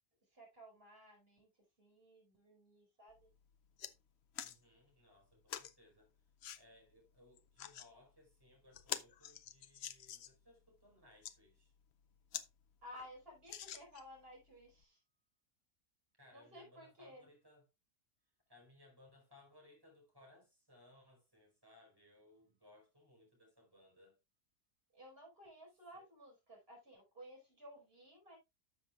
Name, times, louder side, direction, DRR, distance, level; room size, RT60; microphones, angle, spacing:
voice 1, 0.2-1.5 1.8-3.3 12.8-15.0 16.3-17.3 24.9-28.4, equal, 35° right, 5.0 m, -56 dB
sound 1, 3.1-3.2 3.5-3.9 4.3-4.6 5.5-5.7 6.4-6.6 7.4-7.9 8.3-8.4 8.7-10.4 11.0-11.3 11.9-12.0 12.3-12.5 12.8-12.9 13.5-14.2 14.8-14.9, left 10 dB, 65° left, 0.6 m, -46 dB
voice 2, 4.4-6.1 6.6-11.7 16.2-17.7 18.5-24.2 25.9-26.0, left 1 dB, 15° right, 4.5 m, -65 dB
12.5 x 7.3 x 2.4 m
omnidirectional pair, 1.7 m